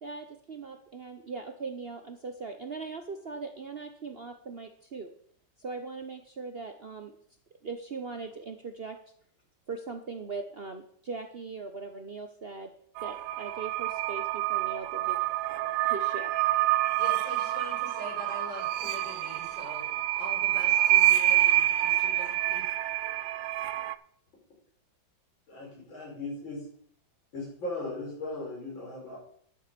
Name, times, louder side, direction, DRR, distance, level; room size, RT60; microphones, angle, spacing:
voice 1, 0.0-5.1 5.6-7.1 7.6-9.0 9.7-12.7 13.0-15.2 15.8-16.3, right 4 dB, 55° right, 6 dB, 0.7 m, -40 dB
sound 1, 13.0-23.9, right 14 dB, 80° right, 1.3 m, -27 dB
voice 2, 17.0-22.7, equal, 60° left, -5 dB, 6.8 m, -43 dB
voice 3, 25.5-26.6 27.3-29.2, left 2 dB, 80° left, -2 dB, 5.6 m, -37 dB
11.0 x 7.4 x 6.7 m, 0.63 s
omnidirectional pair, 2.1 m